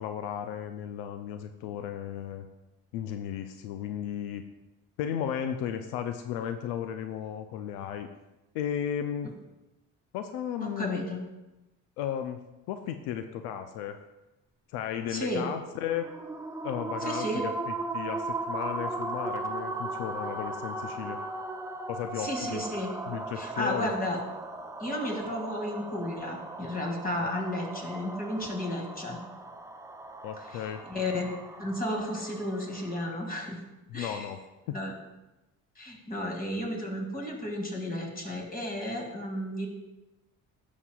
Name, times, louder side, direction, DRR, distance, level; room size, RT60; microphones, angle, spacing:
voice 1, 0.0-2.4 2.9-4.4 5.0-8.1 8.5-9.3 10.1-11.0 12.0-12.4 12.7-14.0 14.7-16.1 16.6-17.5 17.9-21.2 21.9-22.6 23.1-23.9 30.2-30.8 33.9-34.4 34.7-34.8, left 9 dB, 85° left, 8 dB, 0.5 m, -34 dB
voice 2, 10.6-11.2 15.1-15.4 17.0-17.4 22.2-22.9 23.4-24.2 24.8-29.2 30.5-33.6 33.9-34.3 34.7-34.9 35.8-39.7, left 1 dB, 25° left, 1 dB, 2.1 m, -33 dB
moaning ghost, 15.8-33.1, right 2 dB, 10° right, 0.5 m, -38 dB
11.0 x 6.4 x 2.3 m, 1.0 s
supercardioid pair, 65°, 37 cm